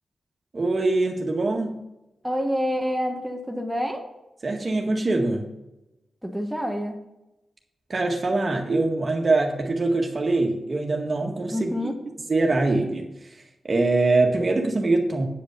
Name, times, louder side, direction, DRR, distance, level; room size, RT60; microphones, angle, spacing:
voice 1, 0.5-1.8 4.4-5.5 7.9-11.7 12.3-13.1 13.6-15.2, right 2 dB, 45° right, 2 dB, 1.7 m, -23 dB
voice 2, 2.2-4.0 6.2-7.0 11.5-12.0, equal, 5° right, 2 dB, 1.4 m, -27 dB
8.9 x 5.2 x 6.9 m, 0.96 s
cardioid pair, 50°, 0 cm